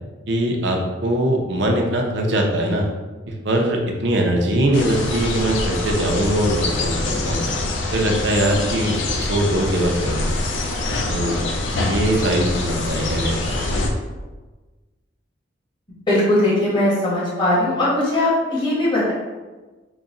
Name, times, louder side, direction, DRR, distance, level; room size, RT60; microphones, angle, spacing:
voice 1, 0.3-2.9 3.3-7.4 7.9-10.3 11.1-11.4 11.8-13.6, right 1 dB, 60° right, 1 dB, 0.6 m, -21 dB
sound 1, 4.7-13.9, left 2 dB, 70° left, 0.5 m, -24 dB
voice 2, 16.1-19.1, left 1 dB, 25° left, -8 dB, 1.2 m, -19 dB
4.0 x 2.2 x 3.7 m, 1.3 s
head